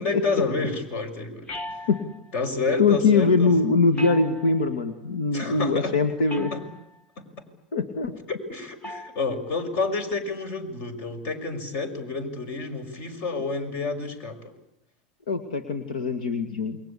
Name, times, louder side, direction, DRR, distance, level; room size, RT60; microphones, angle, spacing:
voice 1, 0.0-1.8 2.3-3.7 5.3-6.0 6.5-6.6 7.2-7.4 8.3-14.4, left 3 dB, 50° left, 9 dB, 6.1 m, -29 dB
sound 1, 1.5-2.3 3.9-4.8 6.3-7.0 8.8-9.2, left 1 dB, 25° left, 1.8 m, -38 dB
voice 2, 2.8-6.5 7.7-8.2 15.3-16.8, left 4 dB, 80° left, 8 dB, 2.2 m, -22 dB
28.5 x 23.0 x 8.6 m, 0.80 s
hypercardioid pair, 90°, 5 cm